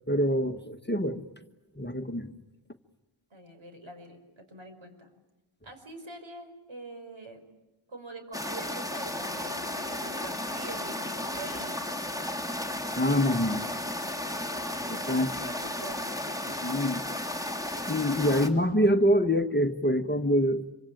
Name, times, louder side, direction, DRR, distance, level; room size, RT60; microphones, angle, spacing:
voice 1, 0.1-1.2 1.8-2.3 13.0-13.6 14.9-15.3 16.6-17.0 17.9-20.7, equal, 20° left, 7 dB, 1.2 m, -25 dB
voice 2, 3.3-5.1 5.6-7.4 7.9-12.0 14.9-16.2, right 2 dB, 65° right, 6 dB, 5.5 m, -45 dB
sound 1, 8.3-18.5, left 1 dB, 5° right, 2.7 m, -34 dB
26.5 x 24.5 x 9.1 m, 1.0 s
wide cardioid pair, 75°, 50 cm